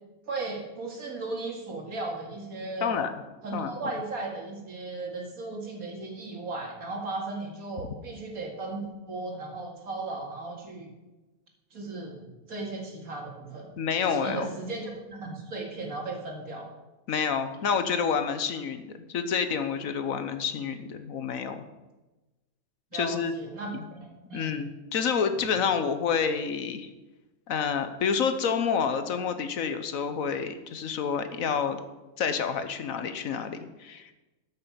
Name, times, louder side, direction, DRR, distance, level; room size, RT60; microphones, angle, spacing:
voice 1, 0.3-3.0 3.4-10.9 11.7-13.7 14.0-16.7 22.9-24.6, right 3 dB, 75° right, 1 dB, 2.5 m, -36 dB
voice 2, 2.8-3.1 3.5-3.7 13.8-14.5 17.1-21.6 22.9-23.3 23.7-23.8 24.3-26.9 27.5-31.8 32.2-34.1, left 6 dB, 70° left, 9 dB, 1.3 m, -28 dB
13.0 x 6.8 x 5.7 m, 1.1 s
omnidirectional pair, 1.5 m